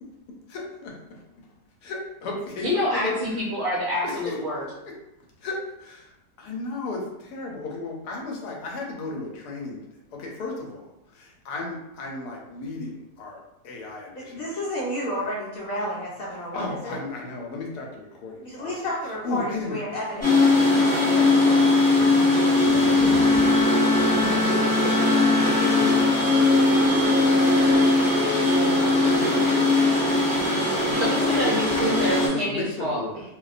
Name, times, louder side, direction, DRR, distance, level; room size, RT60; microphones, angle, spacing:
voice 1, 0.5-1.0 1.8-2.7 2.9-3.2 4.0-4.9 5.4-6.1 6.4-9.8 10.1-10.8 11.1-13.4 13.6-14.5 16.5-18.7 19.2-19.8 20.1-20.3 20.8-21.6 22.0-25.1 25.4-27.8 28.2-28.6 29.0-29.8 30.7-31.0 31.4-33.2, left 3 dB, 85° left, -1 dB, 1.1 m, -35 dB
voice 2, 2.6-4.6 31.0-33.0, left 1 dB, 60° right, -6 dB, 0.7 m, -27 dB
voice 3, 14.2-17.0 18.4-20.3 20.9-21.7, equal, 70° left, -7 dB, 1.0 m, -32 dB
sound 1, 20.2-32.3, left 2 dB, 5° left, 0.9 m, -20 dB
Bowed string instrument, 22.9-26.5 27.0-27.4, left 2 dB, 30° right, 0.8 m, -27 dB
2.6 x 2.1 x 2.4 m, 0.91 s
omnidirectional pair, 1.7 m